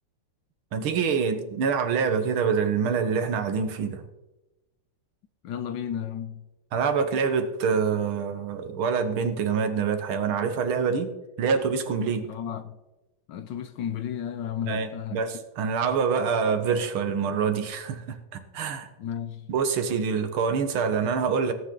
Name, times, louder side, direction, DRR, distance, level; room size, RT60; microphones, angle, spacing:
voice 1, 0.7-4.0 6.7-11.1 11.4-12.3 14.7-18.9 19.5-21.5, right 6 dB, 75° right, 2.0 m, -26 dB
voice 2, 5.4-6.5 12.3-12.8 13.3-15.4 19.0-19.5, left 9 dB, 70° left, 1.2 m, -33 dB
17.5 x 9.4 x 3.9 m
omnidirectional pair, 2.3 m